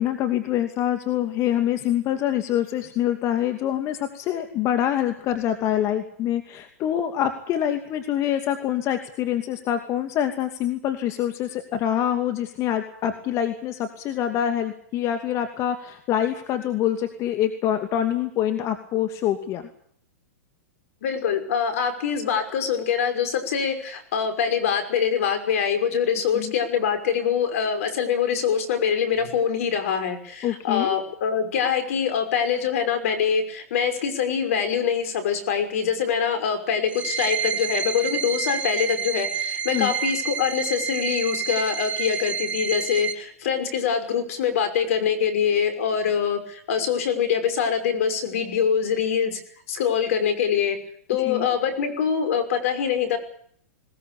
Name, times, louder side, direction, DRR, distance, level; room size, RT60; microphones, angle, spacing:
voice 1, 0.0-19.6 26.3-26.5 30.4-30.9 39.7-39.9 51.2-51.5, left 11 dB, 35° left, 7 dB, 2.6 m, -25 dB
voice 2, 21.0-49.4 49.7-50.8 51.1-53.2, left 7 dB, 65° left, 10 dB, 5.8 m, -24 dB
sound 1, 36.9-43.1, right 7 dB, 15° right, 2.8 m, -28 dB
20.5 x 20.0 x 8.5 m, 0.63 s
hypercardioid pair, 115°, 8 cm